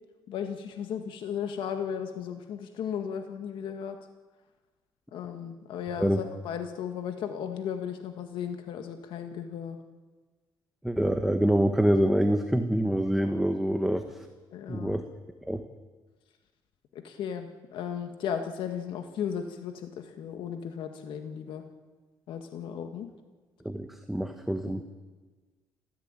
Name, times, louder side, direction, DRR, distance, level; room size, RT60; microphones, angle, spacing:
voice 1, 0.3-4.0 5.1-9.8 14.5-15.0 16.9-21.6 22.3-23.1 24.7-24.8, left 8 dB, 85° left, 6 dB, 1.8 m, -35 dB
voice 2, 10.8-14.0 14.7-15.0 15.5-15.6 23.6-24.8, equal, 5° right, 6 dB, 1.4 m, -25 dB
29.0 x 15.5 x 9.0 m, 1.3 s
cardioid pair, 115°, 8 cm